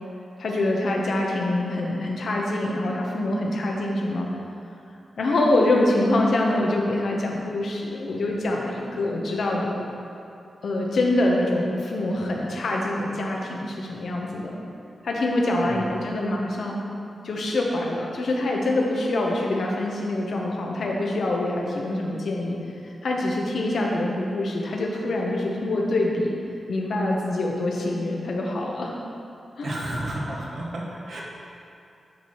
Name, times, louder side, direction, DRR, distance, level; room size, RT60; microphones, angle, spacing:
voice 1, 0.4-4.3 5.2-9.8 10.6-14.6 15.0-16.8 17.2-22.6 22.8-26.3 26.7-28.9 29.6-29.7, left 1 dB, 70° left, -1 dB, 0.9 m, -25 dB
voice 2, 29.6-31.2, right 1 dB, 65° right, -3 dB, 1.2 m, -31 dB
10.0 x 4.6 x 3.0 m, 2.7 s
wide cardioid pair, 110°, 0 cm